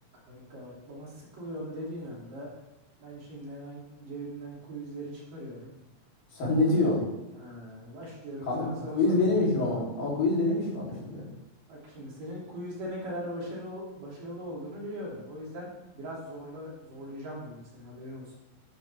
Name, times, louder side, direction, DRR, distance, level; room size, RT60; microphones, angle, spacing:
voice 1, 0.3-2.5 3.0-5.7 7.3-9.2 11.7-18.4, equal, 65° right, -5 dB, 4.6 m, -40 dB
voice 2, 6.3-7.0 8.5-11.2, left 2 dB, 65° left, -5 dB, 5.1 m, -26 dB
12.5 x 10.5 x 3.5 m, 0.97 s
omnidirectional pair, 4.3 m